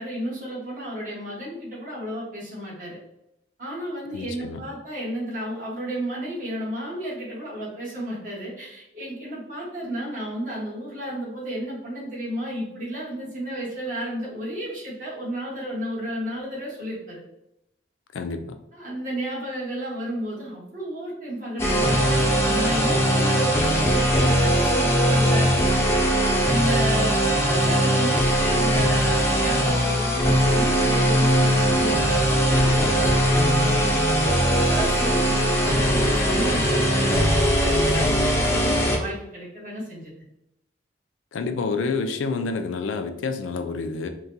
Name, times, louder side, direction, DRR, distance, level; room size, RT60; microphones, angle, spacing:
voice 1, 0.0-3.0 3.6-17.2 18.7-37.1 37.5-40.1, equal, 45° right, -6 dB, 1.3 m, -32 dB
voice 2, 4.1-4.6 18.1-18.4 31.7-31.8 41.3-44.1, left 4 dB, 90° left, 7 dB, 0.4 m, -28 dB
sound 1, 21.6-39.0, equal, 15° left, 0.5 m, -20 dB
3.7 x 2.2 x 2.7 m, 0.83 s
head